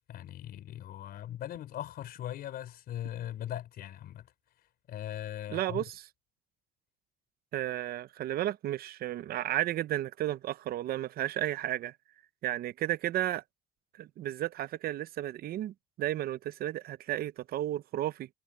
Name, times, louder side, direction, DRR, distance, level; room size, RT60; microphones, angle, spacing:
voice 1, 0.1-4.3 4.9-5.8, left 11 dB, 65° left, 3.5 m, -40 dB
voice 2, 5.5-5.8 7.5-11.9 12.4-13.4 13.9-18.3, right 13 dB, 65° right, 0.8 m, -33 dB
cardioid pair, 110°, 17 cm